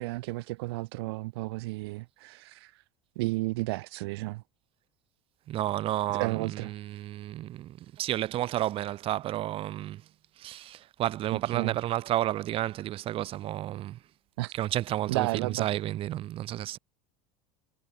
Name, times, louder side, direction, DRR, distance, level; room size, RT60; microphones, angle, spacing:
voice 1, 0.0-2.7 3.2-4.4 6.1-6.7 11.5-11.8 14.4-14.5 15.1-15.7, right 22 dB, 85° right, 0.6 m, -32 dB
voice 2, 5.5-10.0 10.4-14.0 14.5-16.8, right 13 dB, 45° right, 2.1 m, -31 dB
supercardioid pair, 120°, 13 cm